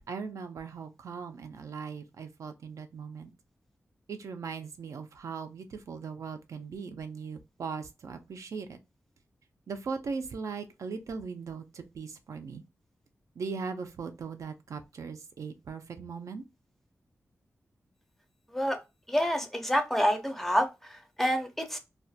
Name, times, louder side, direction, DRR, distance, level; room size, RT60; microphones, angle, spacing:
voice 1, 0.1-3.3 4.1-8.8 9.7-12.6 13.4-16.4, right 5 dB, 80° right, 0.4 m, -39 dB
voice 2, 19.1-21.8, equal, 5° left, 0.4 m, -28 dB
2.3 x 2.2 x 2.6 m
wide cardioid pair, 140°, 5 cm